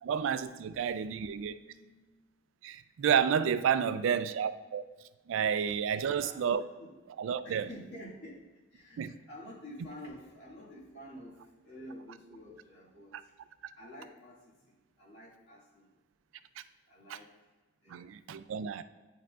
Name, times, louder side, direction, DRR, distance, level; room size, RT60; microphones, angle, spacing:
voice 1, 0.0-1.6 2.6-4.8 5.3-6.6 7.2-7.7 9.0-9.2 17.1-17.2 17.9-18.8, right 7 dB, 85° right, 13 dB, 0.3 m, -30 dB
voice 2, 0.6-2.1 3.7-4.3 5.9-6.4 6.8-6.9 7.4-8.4 8.7-13.3 13.8-15.9 16.9-17.3 17.8-18.3, equal, 60° left, -6 dB, 1.8 m, -50 dB
8.8 x 4.7 x 2.4 m, 1.2 s
head